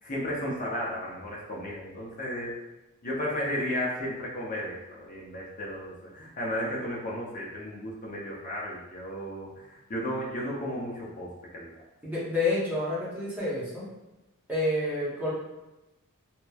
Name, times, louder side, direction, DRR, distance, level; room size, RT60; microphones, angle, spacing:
voice 1, 0.0-2.5 3.0-11.7, equal, 35° left, -4 dB, 0.6 m, -34 dB
voice 2, 12.0-13.9 14.5-15.3, left 2 dB, 10° right, -8 dB, 0.8 m, -29 dB
2.9 x 2.0 x 2.3 m, 1.0 s
head